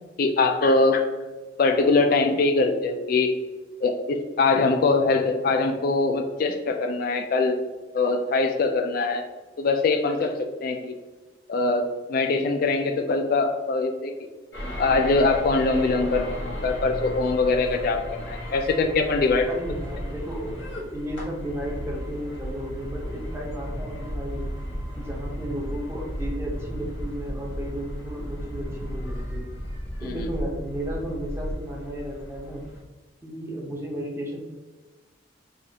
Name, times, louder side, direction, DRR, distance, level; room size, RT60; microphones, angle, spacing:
voice 1, 0.2-1.1 1.6-3.3 3.8-7.6 7.9-9.3 9.6-10.9 11.5-11.8 12.1-14.1 14.8-19.5 30.0-30.3, left 3 dB, 50° left, 4 dB, 0.3 m, -22 dB
sound 1, 14.5-32.8, equal, 85° left, 1.2 m, -34 dB
voice 2, 19.5-24.4 24.9-29.4 30.0-32.6 33.2-34.4, equal, 15° right, -2 dB, 0.7 m, -34 dB
4.8 x 2.4 x 2.8 m, 1.3 s
head